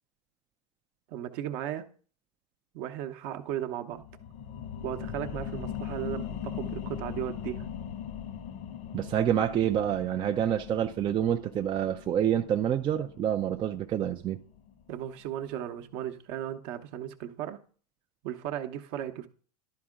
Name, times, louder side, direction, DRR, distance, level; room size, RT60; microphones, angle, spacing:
voice 1, 1.1-1.9 2.7-4.0 4.8-7.7 14.9-17.6 18.2-19.3, right 11 dB, 50° right, 0.8 m, -36 dB
sound 1, 3.9-15.1 15.5-15.6, left 8 dB, 45° left, 0.7 m, -40 dB
voice 2, 8.9-14.4, right 10 dB, 25° right, 0.4 m, -27 dB
11.5 x 4.3 x 3.6 m
hypercardioid pair, 105°, 20 cm